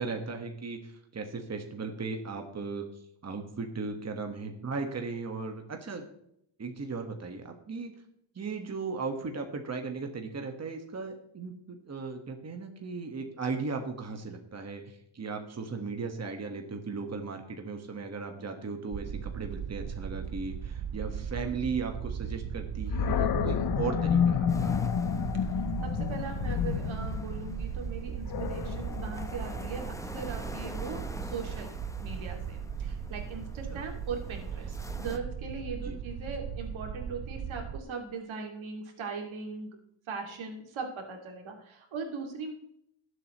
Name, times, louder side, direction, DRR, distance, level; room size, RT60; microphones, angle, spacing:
voice 1, 0.0-2.8 3.2-6.0 6.6-7.9 8.3-24.8 33.7-33.8 35.7-36.0, right 4 dB, 35° right, 4 dB, 1.5 m, -37 dB
sound 1, 18.9-37.8, right 8 dB, 55° right, 0.8 m, -38 dB
Animal, 22.9-30.0, left 8 dB, 50° left, 0.6 m, -30 dB
sound 2, 24.5-35.2, left 1 dB, 5° left, 0.8 m, -46 dB
voice 2, 25.5-31.7 32.0-39.7 40.1-42.5, right 4 dB, 90° right, 2 dB, 2.5 m, -39 dB
19.0 x 8.0 x 3.1 m, 0.74 s
wide cardioid pair, 130°, 46 cm